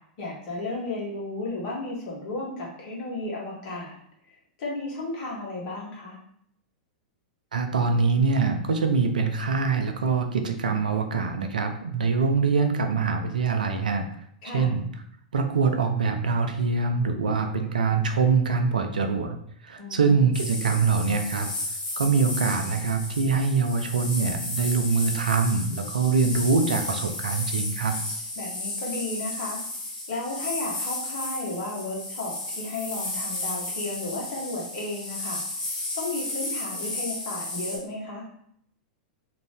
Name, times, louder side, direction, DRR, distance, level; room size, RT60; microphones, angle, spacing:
voice 1, 0.2-4.0 4.6-6.2 14.4-14.7 19.8-20.2 28.4-29.6 30.1-35.4 35.9-38.2, left 2 dB, 50° left, -3 dB, 1.3 m, -33 dB
voice 2, 7.5-14.0 14.5-14.9 15.3-19.4 19.6-21.5 22.0-28.0, right 5 dB, 75° right, 6 dB, 0.5 m, -24 dB
sound 1, 20.3-37.8, left 2 dB, 30° left, 1.2 m, -33 dB
2.9 x 2.6 x 3.3 m, 0.69 s
figure-of-eight pair, 100°, 4 cm